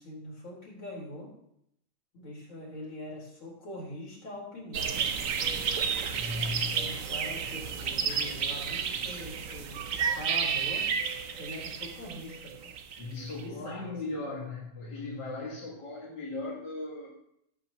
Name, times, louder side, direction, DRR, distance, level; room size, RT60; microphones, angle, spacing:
voice 1, 0.0-1.3 2.1-5.1 6.5-10.9 11.4-12.7 13.3-13.9, left 1 dB, 75° left, -4 dB, 5.0 m, -43 dB
sound 1, 4.7-13.4, right 6 dB, 60° right, 0.9 m, -31 dB
voice 2, 6.1-6.9 13.0-17.1, left 2 dB, 60° left, -6 dB, 2.6 m, -37 dB
17.0 x 8.3 x 3.0 m, 0.76 s
omnidirectional pair, 2.2 m